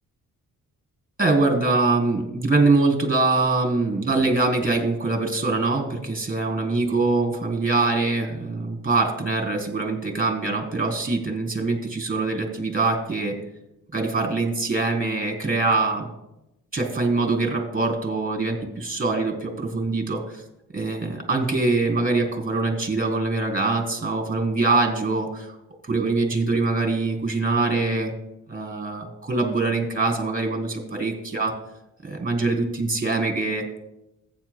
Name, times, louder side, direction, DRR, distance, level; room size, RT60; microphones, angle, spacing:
voice 1, 1.2-13.4 13.9-16.1 16.7-20.4 20.7-25.5 25.8-28.1 28.5-31.5 32.0-33.6, right 3 dB, 25° right, 2 dB, 3.3 m, -23 dB
15.0 x 9.4 x 2.2 m, 0.89 s
supercardioid pair, 55°, 36 cm